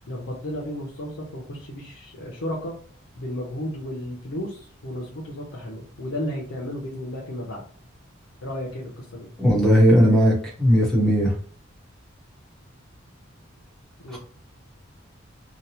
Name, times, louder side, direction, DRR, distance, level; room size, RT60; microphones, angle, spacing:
voice 1, 0.1-2.7 3.2-7.6 8.4-9.3 14.0-14.2, left 1 dB, 80° left, -4 dB, 0.7 m, -33 dB
voice 2, 9.4-11.3 14.1-14.2, equal, ahead, -4 dB, 0.9 m, -17 dB
2.9 x 2.0 x 2.8 m, 0.43 s
head